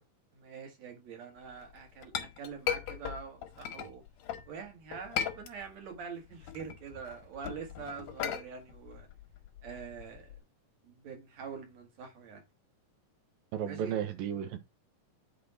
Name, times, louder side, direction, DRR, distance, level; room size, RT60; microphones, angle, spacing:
voice 1, 0.3-4.0 4.5-9.1 9.6-10.3 10.8-12.4 13.6-14.0, right 6 dB, 55° right, 2.6 m, -45 dB
Chink clink, 1.6-4.5 4.9-6.0 6.3-10.4, left 9 dB, 75° left, 2.3 m, -37 dB
voice 2, 13.5-14.6, right 9 dB, 85° right, 2.8 m, -33 dB
8.3 x 4.4 x 4.2 m
omnidirectional pair, 4.0 m